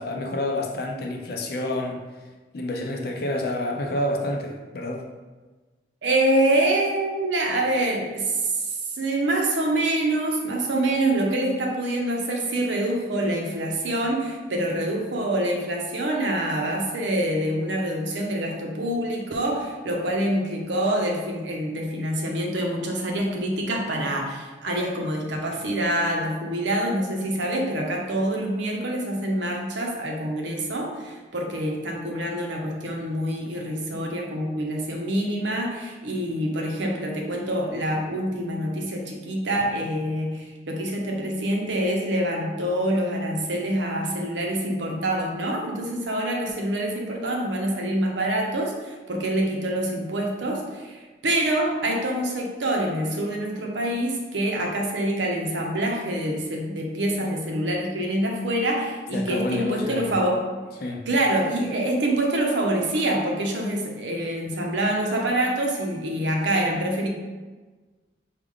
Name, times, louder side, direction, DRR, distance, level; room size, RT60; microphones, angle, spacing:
voice 1, 0.0-2.0 2.5-5.0 59.1-60.1 60.8-61.0, left 1 dB, 55° left, 2 dB, 0.5 m, -28 dB
voice 2, 6.0-8.7 8.9-60.5 61.1-67.1, right 1 dB, 90° right, 1 dB, 0.7 m, -26 dB
4.8 x 2.4 x 3.6 m, 1.3 s
head